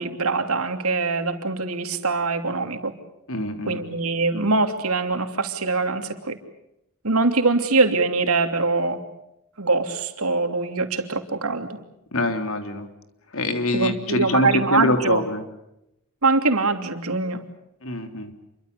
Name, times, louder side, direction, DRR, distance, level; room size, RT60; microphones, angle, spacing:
voice 1, 0.0-2.9 3.7-6.4 7.0-9.0 9.6-11.8 13.7-15.2 16.2-17.4, right 3 dB, 80° right, 6 dB, 3.0 m, -23 dB
voice 2, 3.3-3.8 12.1-12.9 13.3-15.4 17.8-18.3, left 1 dB, 65° left, 7 dB, 3.5 m, -24 dB
28.5 x 23.5 x 6.8 m, 0.84 s
head